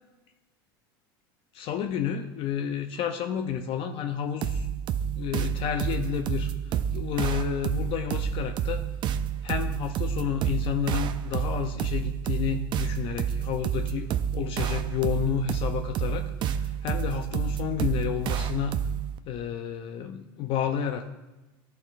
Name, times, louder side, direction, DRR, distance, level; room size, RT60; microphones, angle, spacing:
voice 1, 1.5-4.7 5.2-6.5 6.9-8.8 9.4-18.8 19.3-21.1, left 8 dB, 45° left, 7 dB, 0.4 m, -30 dB
sound 1, 4.4-19.2, right 8 dB, 40° right, 0.4 m, -29 dB
11.5 x 4.2 x 2.4 m, 1.1 s
supercardioid pair, 105°, 12 cm